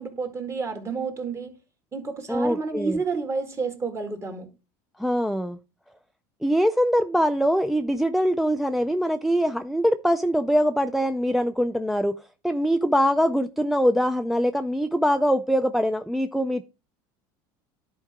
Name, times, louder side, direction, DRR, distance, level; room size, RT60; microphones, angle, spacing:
voice 1, 0.0-1.5 1.9-4.5, right 4 dB, 25° right, 2.0 m, -30 dB
voice 2, 2.3-3.0 5.0-5.6 6.4-12.2 12.4-16.6, equal, ahead, 0.4 m, -23 dB
10.5 x 4.7 x 3.6 m
supercardioid pair, 110°, 11 cm